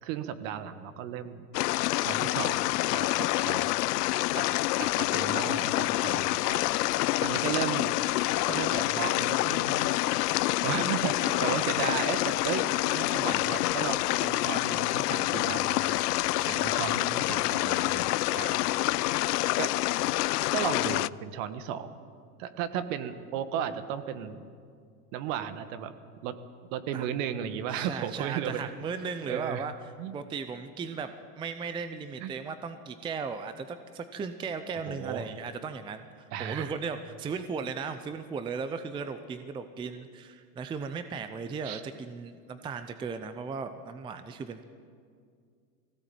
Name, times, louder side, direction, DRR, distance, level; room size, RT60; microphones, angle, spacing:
voice 1, 0.0-1.5 2.0-2.7 2.9-3.8 4.3-4.4 4.8-6.6 7.2-8.0 8.4-9.9 10.6-12.6 12.9-15.9 16.4-18.6 19.6-19.7 20.5-22.0 22.4-24.4 25.1-25.9 26.2-26.4 26.7-28.7 29.3-29.7 30.0-30.2 32.2-32.3 34.9-35.3 36.3-36.7 41.6-41.8, right 9 dB, 50° right, 11 dB, 1.6 m, -35 dB
sound 1, 1.5-21.1, left 18 dB, 70° left, 0.5 m, -27 dB
voice 2, 18.5-19.0 26.9-27.1 27.7-44.6, right 5 dB, 10° right, 10 dB, 0.6 m, -37 dB
20.0 x 16.5 x 9.0 m, 2.2 s
hypercardioid pair, 120°, 49 cm